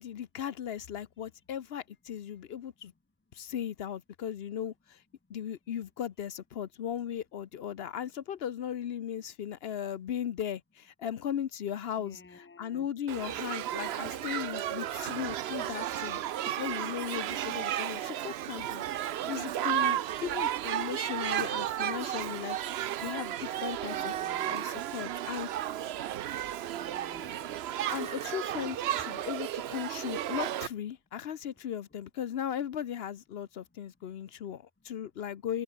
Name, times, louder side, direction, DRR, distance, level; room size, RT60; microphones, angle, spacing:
voice 1, 0.0-2.9 3.3-5.0 5.3-16.2 16.5-18.8 19.3-22.6 23.0-24.2 24.5-25.5 27.9-35.6, left 9 dB, 75° left, 1.0 m, -37 dB
voice 2, 12.0-12.9 23.8-24.7 26.7-27.6, left 3 dB, 10° left, 0.9 m, -52 dB
Shout / Human group actions, 13.1-30.7, right 12 dB, 85° right, 0.9 m, -33 dB
omnidirectional pair, 1.1 m